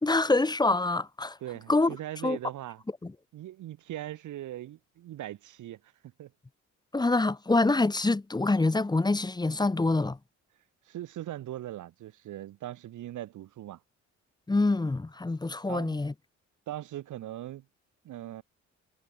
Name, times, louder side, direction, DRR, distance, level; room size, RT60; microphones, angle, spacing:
voice 1, 0.0-1.4 1.7-2.0 2.2-2.4 3.0-3.1 6.9-10.2 14.5-16.1, left 2 dB, 15° left, 1.0 m, -25 dB
voice 2, 1.4-2.8 3.3-5.9 6.2-6.3 10.8-13.8 15.7-16.0 16.7-17.6 18.0-18.4, right 13 dB, 80° right, 3.5 m, -40 dB
cardioid pair, 90°, 30 cm